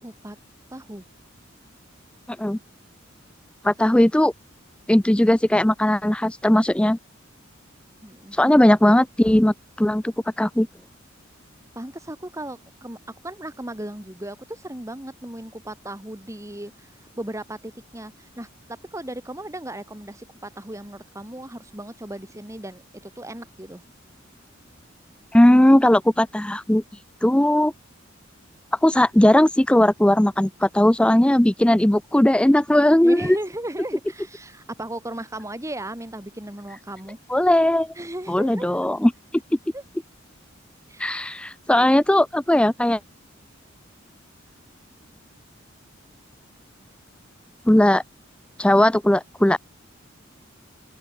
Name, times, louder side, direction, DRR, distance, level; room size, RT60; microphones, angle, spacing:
voice 1, 0.0-0.4 0.7-1.0 8.0-8.4 11.8-13.0 13.2-23.8 33.0-37.2 38.0-38.9 39.7-39.8 40.9-41.2 41.8-41.9, right 1 dB, 15° right, 2.3 m, -36 dB
voice 2, 3.6-4.3 4.9-7.0 8.3-10.7 25.3-26.8 27.2-27.7 28.8-33.4 37.3-37.9 38.3-39.1 41.0-43.0 47.7-48.0 48.6-49.6, left 1 dB, 5° left, 0.4 m, -18 dB
open air
head